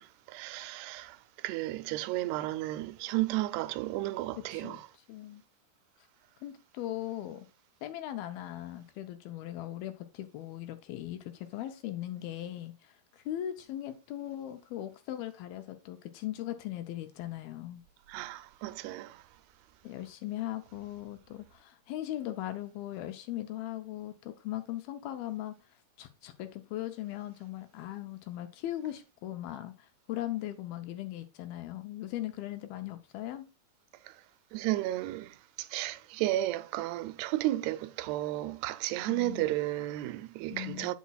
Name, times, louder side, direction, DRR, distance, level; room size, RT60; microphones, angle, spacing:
voice 1, 0.0-4.9 18.1-19.2 34.1-34.2 34.5-40.9, right 16 dB, 85° right, 2.6 m, -33 dB
voice 2, 5.1-5.4 6.4-7.5 7.8-17.8 19.8-25.6 26.0-33.5 39.1-39.5 40.5-40.9, left 13 dB, 80° left, 2.4 m, -39 dB
8.3 x 8.1 x 2.3 m
omnidirectional pair, 4.6 m